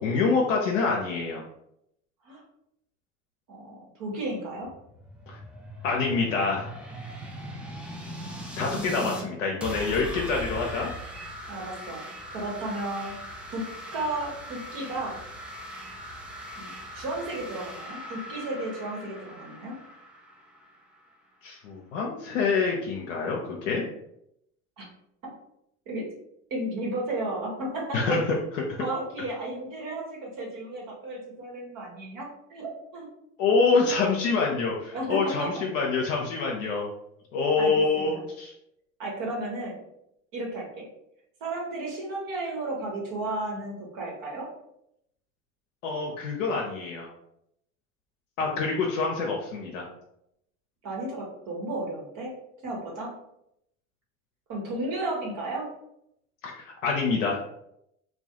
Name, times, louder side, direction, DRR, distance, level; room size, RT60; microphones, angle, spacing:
voice 1, 0.0-1.4 5.3-5.4 5.8-6.7 8.5-10.9 21.4-23.8 27.9-28.8 33.4-36.9 37.3-38.5 45.8-47.1 48.4-49.9 56.4-57.4, left 4 dB, 80° left, -1 dB, 0.5 m, -26 dB
voice 2, 3.5-4.7 8.7-9.1 11.5-12.0 12.3-13.2 13.5-15.2 16.6-19.8 24.8-24.9 25.2-25.3 25.9-26.1 26.5-28.2 28.8-33.1 34.9-35.5 37.6-38.2 39.0-39.8 40.3-40.9 41.4-44.5 50.8-52.3 52.6-53.1 54.5-55.7, right 2 dB, 55° right, -2 dB, 1.0 m, -33 dB
sound 1, 4.6-9.2 9.6-21.2, equal, 5° right, 0.3 m, -40 dB
2.3 x 2.1 x 2.8 m, 0.78 s
hypercardioid pair, 70°, 38 cm